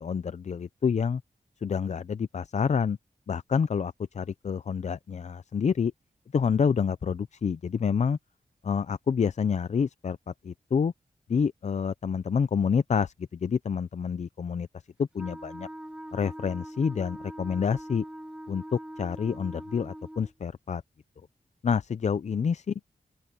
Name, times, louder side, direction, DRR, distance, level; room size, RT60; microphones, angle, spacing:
voice 1, 0.0-1.2 1.6-3.0 3.3-5.9 6.3-8.2 8.6-10.9 11.3-14.7 15.0-15.7 16.1-18.0 18.5-20.8 21.6-22.8, left 6 dB, 50° left, 0.5 m, -28 dB
Wind instrument woodwind instrument, 15.1-20.3, right 1 dB, 5° right, 2.1 m, -42 dB
open air
wide cardioid pair, 125°, 15 cm